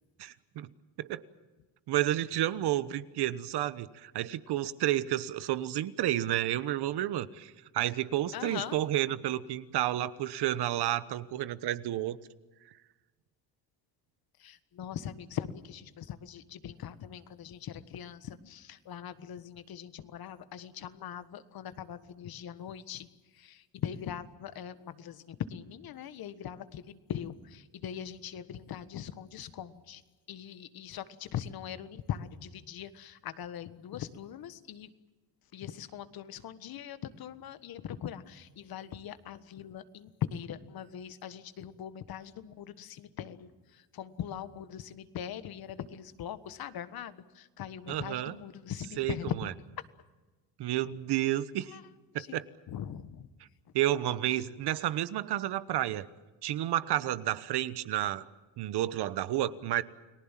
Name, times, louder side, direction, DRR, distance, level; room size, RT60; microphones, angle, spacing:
voice 1, 0.2-0.7 1.0-1.2 1.9-12.2 47.9-48.3 49.0-49.5 50.6-51.8 52.1-52.4 53.7-56.1 56.4-58.3 58.6-59.8, right 13 dB, 70° right, 1.2 m, -31 dB
voice 2, 8.3-8.8 14.4-23.1 23.4-30.0 30.3-34.9 35.5-43.5 43.9-49.3 51.7-51.8 52.3-52.4 52.7-53.3, left 9 dB, 60° left, 1.5 m, -41 dB
30.0 x 19.0 x 7.5 m
cardioid pair, 100°, 41 cm